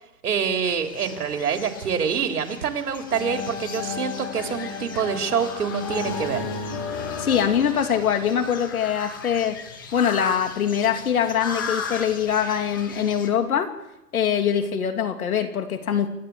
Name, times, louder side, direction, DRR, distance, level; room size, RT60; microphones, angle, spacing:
voice 1, 0.2-6.5, right 7 dB, 75° right, 4 dB, 3.7 m, -26 dB
sound 1, 0.7-13.3, left 5 dB, 15° left, 0.8 m, -38 dB
sound 2, 3.1-8.8, left 5 dB, 40° left, 5.6 m, -33 dB
voice 2, 7.2-9.6 9.9-13.7 14.1-16.1, left 8 dB, 65° left, 6 dB, 3.1 m, -23 dB
27.5 x 12.0 x 8.6 m, 0.90 s
hypercardioid pair, 180°, 47 cm